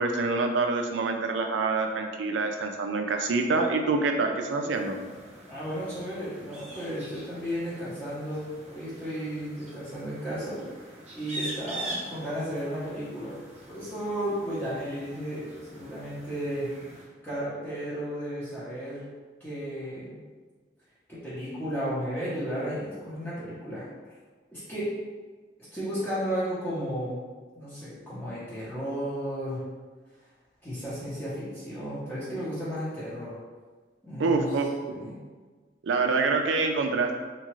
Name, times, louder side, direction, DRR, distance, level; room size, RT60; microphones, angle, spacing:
voice 1, 0.0-5.0 34.2-34.7 35.0-35.1 35.8-37.2, right 3 dB, 85° right, 4 dB, 0.4 m, -26 dB
sound 1, 4.7-17.0, right 1 dB, 35° right, 0.6 m, -44 dB
voice 2, 5.5-10.6 11.1-13.4 13.7-19.0 19.4-20.2 21.1-23.9 24.5-24.9 25.7-27.2 27.5-29.6 30.6-33.4 34.0-34.4 34.9-35.2, equal, 10° left, -12 dB, 0.8 m, -34 dB
2.8 x 2.4 x 3.0 m, 1.4 s
head